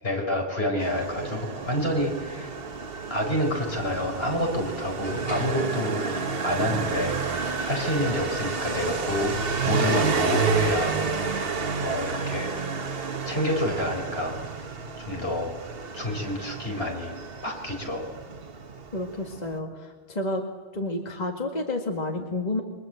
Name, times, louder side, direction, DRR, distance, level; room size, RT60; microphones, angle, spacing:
voice 1, 0.0-2.6 3.1-7.2 7.6-9.3 9.6-12.5 13.2-14.7 15.0-15.5 15.9-17.2 17.4-18.1, left 1 dB, 75° left, 1 dB, 5.5 m, -28 dB
Motorcycle, 0.8-19.6, right 5 dB, 65° right, 1.5 m, -30 dB
voice 2, 18.9-20.4 20.7-22.6, left 2 dB, 40° left, 2 dB, 2.2 m, -30 dB
29.0 x 24.0 x 7.9 m, 1.4 s
omnidirectional pair, 1.0 m